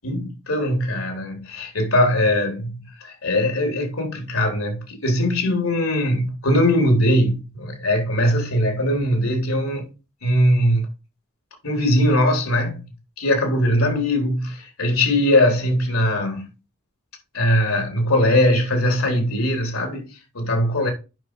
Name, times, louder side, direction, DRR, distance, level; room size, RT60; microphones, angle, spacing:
voice 1, 0.0-9.9 10.2-10.9 11.6-12.9 13.2-16.5 17.3-20.1 20.3-20.9, left 1 dB, 80° left, 3.9 m, -20 dB
8.9 x 6.3 x 4.9 m
head